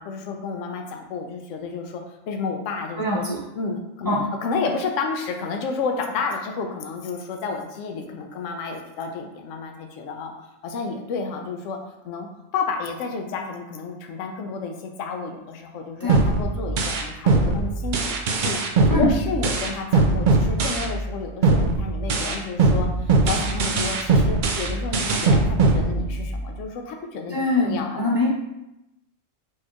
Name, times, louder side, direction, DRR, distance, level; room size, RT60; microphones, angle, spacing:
voice 1, 0.0-3.3 3.6-4.1 4.4-10.3 10.6-11.8 12.0-28.1, left 4 dB, 75° left, 3 dB, 0.9 m, -31 dB
voice 2, 3.0-3.4 4.0-4.2 16.0-16.3 18.9-19.1 27.3-28.3, left 2 dB, 25° left, -6 dB, 0.4 m, -23 dB
sound 1, 16.1-21.1 21.4-26.5, right 3 dB, 70° right, 0.4 m, -21 dB
4.3 x 3.0 x 2.4 m, 0.89 s
omnidirectional pair, 1.3 m